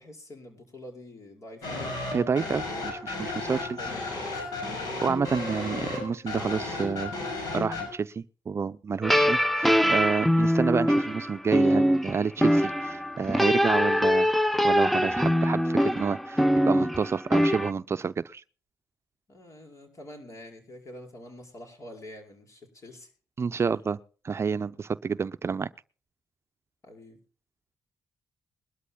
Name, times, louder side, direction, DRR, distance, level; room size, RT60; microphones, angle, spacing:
voice 1, 0.0-1.9 3.4-5.0 19.3-23.1 26.8-27.2, left 1 dB, 50° left, 5.1 m, -47 dB
sound 1, 1.6-7.9, left 3 dB, 80° left, 6.3 m, -34 dB
voice 2, 2.1-3.8 5.0-7.1 7.5-14.3 14.6-18.4 23.4-24.0 24.2-25.7, right 5 dB, 40° right, 0.6 m, -29 dB
sound 2, 9.0-17.7, equal, ahead, 0.6 m, -23 dB
21.5 x 12.5 x 2.3 m
cardioid pair, 70°, 7 cm